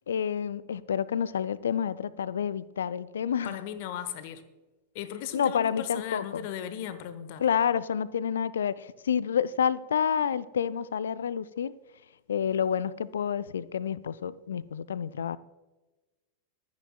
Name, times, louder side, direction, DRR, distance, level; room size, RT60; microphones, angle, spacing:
voice 1, 0.1-3.6 5.3-6.5 7.4-11.7 12.3-15.4, left 8 dB, 65° left, 0.4 m, -29 dB
voice 2, 3.4-4.4 4.9-7.4, left 10 dB, 50° left, 1.0 m, -37 dB
24.0 x 9.6 x 2.3 m
figure-of-eight pair, 90°, 0 cm